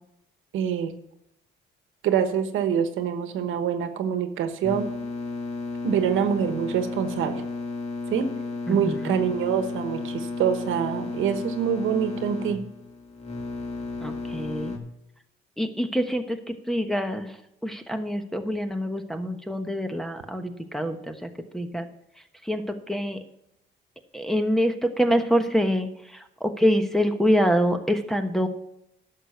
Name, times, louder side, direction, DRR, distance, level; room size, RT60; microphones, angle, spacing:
voice 1, 0.5-0.9 2.0-4.9 5.8-7.4 8.1-8.3 8.7-12.6, right 8 dB, 85° right, 9 dB, 1.3 m, -25 dB
sound 1, 4.6-14.8, left 3 dB, 30° left, 2.2 m, -33 dB
voice 2, 8.7-9.1 14.0-14.8 15.6-17.3 17.6-21.9 22.4-23.2 24.1-28.5, equal, ahead, 4 dB, 1.2 m, -26 dB
11.0 x 6.6 x 7.0 m, 0.82 s
cardioid pair, 90°, 20 cm